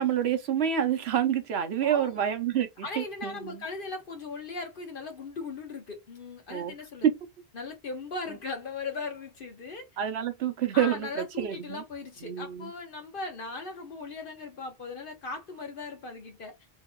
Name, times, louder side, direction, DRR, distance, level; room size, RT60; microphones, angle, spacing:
voice 1, 0.0-3.6 6.5-6.7 8.3-8.4 10.0-11.8 12.2-12.7, right 9 dB, 90° right, 1.0 m, -28 dB
voice 2, 1.8-2.3 2.8-7.1 7.5-9.9 10.7-16.5, left 3 dB, 60° left, 1.1 m, -38 dB
3.8 x 2.8 x 2.2 m
omnidirectional pair, 1.0 m